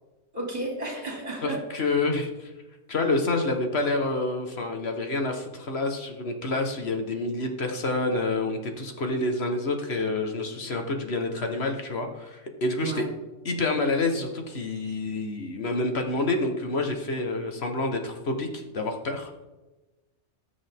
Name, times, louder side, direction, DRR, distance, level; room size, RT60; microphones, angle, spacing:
voice 1, 0.3-2.0 12.8-13.1, right 1 dB, 35° right, -2 dB, 3.3 m, -33 dB
voice 2, 1.4-2.5 2.9-13.0 13.4-19.4, left 2 dB, 60° left, 4 dB, 1.6 m, -28 dB
19.0 x 7.2 x 3.6 m, 1.1 s
omnidirectional pair, 1.2 m